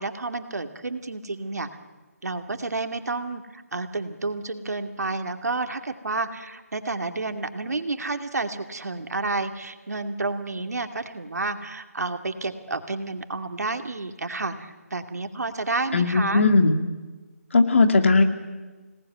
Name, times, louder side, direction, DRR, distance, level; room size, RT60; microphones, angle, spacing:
voice 1, 0.0-1.7 2.2-16.4, right 3 dB, 80° right, 7 dB, 2.5 m, -30 dB
voice 2, 15.9-16.8 17.5-18.2, left 3 dB, 50° left, 7 dB, 2.4 m, -18 dB
26.0 x 19.0 x 9.5 m, 1.3 s
hypercardioid pair, 170°, 9 cm